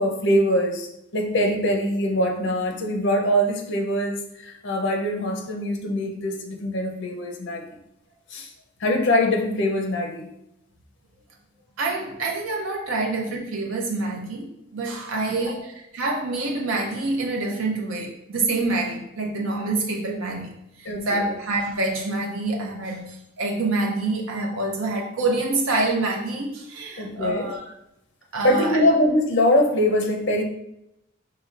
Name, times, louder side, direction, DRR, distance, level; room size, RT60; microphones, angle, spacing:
voice 1, 0.0-7.6 8.3-8.5 8.8-10.3 15.3-15.6 20.8-21.3 27.0-27.5 28.4-30.4, left 1 dB, 60° left, 2 dB, 0.7 m, -23 dB
voice 2, 11.8-27.7 28.3-28.8, right 2 dB, 90° right, 0 dB, 0.5 m, -27 dB
4.8 x 3.1 x 2.5 m, 0.82 s
head